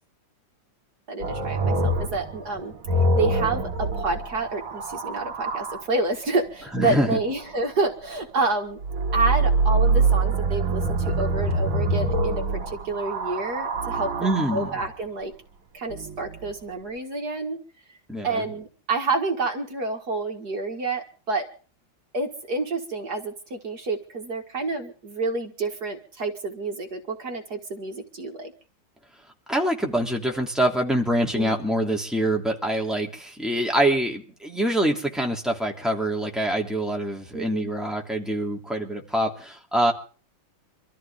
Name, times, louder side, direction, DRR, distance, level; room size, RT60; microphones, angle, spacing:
voice 1, 1.1-2.7 3.1-8.8 9.1-15.3 15.7-17.6 18.2-21.5 22.1-28.5 31.3-31.6 37.3-37.7, right 3 dB, 55° right, 3 dB, 2.3 m, -29 dB
sound 1, 1.2-5.8 8.8-14.9 15.9-16.5, right 2 dB, 90° right, 2.3 m, -25 dB
voice 2, 6.7-7.2 14.2-14.7 18.1-18.4 29.5-39.9, right 1 dB, ahead, 0 dB, 2.7 m, -25 dB
25.5 x 14.0 x 3.6 m, 0.39 s
omnidirectional pair, 2.1 m